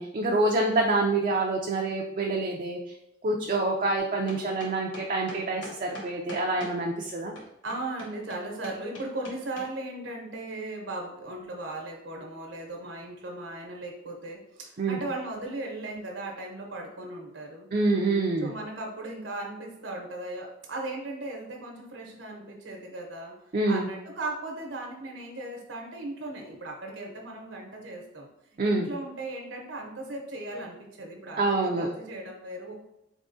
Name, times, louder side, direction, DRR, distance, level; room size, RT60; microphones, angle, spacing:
voice 1, 0.0-2.8 3.2-7.3 14.8-15.0 17.7-18.5 23.5-23.9 28.6-28.9 31.4-31.9, right 2 dB, 45° right, 0 dB, 0.4 m, -26 dB
sound 1, 4.0-6.8 7.4-9.7, left 1 dB, 80° left, 1.1 m, -42 dB
voice 2, 7.6-17.7 18.4-23.3 23.7-28.3 28.6-32.7, right 2 dB, 85° right, 1 dB, 1.0 m, -37 dB
4.1 x 3.5 x 2.6 m, 0.81 s
head